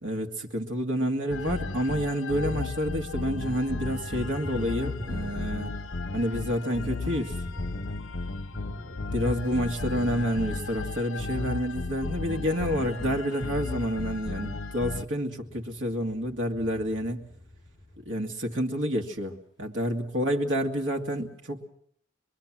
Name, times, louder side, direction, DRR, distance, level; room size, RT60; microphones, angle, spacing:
voice 1, 0.0-5.8 6.1-7.4 9.1-17.3 18.1-21.7, equal, 75° right, 2 dB, 2.1 m, -29 dB
sound 1, 1.3-15.0, left 3 dB, 85° left, 0.9 m, -34 dB
Thunder, 2.2-3.0 3.2-18.5, left 1 dB, 20° left, 5.7 m, -46 dB
23.5 x 23.0 x 7.4 m, 0.65 s
head